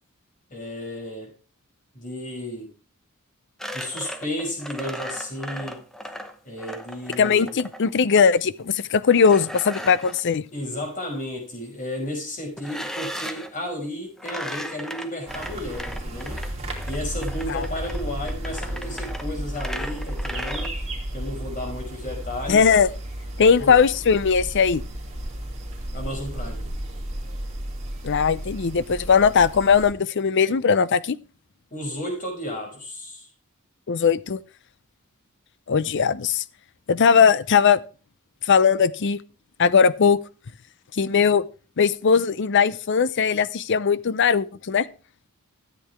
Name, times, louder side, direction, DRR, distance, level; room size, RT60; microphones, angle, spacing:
voice 1, 0.5-1.3 1.9-2.7 3.7-5.8 6.4-7.5 10.5-16.4 16.9-20.7 21.1-22.7 23.6-23.7 25.9-26.7 31.7-33.3, left 1 dB, 40° left, 1 dB, 5.4 m, -33 dB
sound 1, 3.6-7.9 9.1-10.2 12.6-13.5 14.2-20.7, equal, ahead, 0.9 m, -36 dB
voice 2, 7.2-10.4 17.5-17.6 22.5-22.9 23.4-24.8 28.0-31.2 33.9-34.4 35.7-36.4 36.9-37.8 38.4-39.2 39.6-40.2 40.9-41.4 41.8-44.9, left 6 dB, 55° left, 17 dB, 0.5 m, -19 dB
sound 2, 15.3-29.9, right 1 dB, 30° right, 2.7 m, -33 dB
13.0 x 8.5 x 3.5 m, 0.36 s
head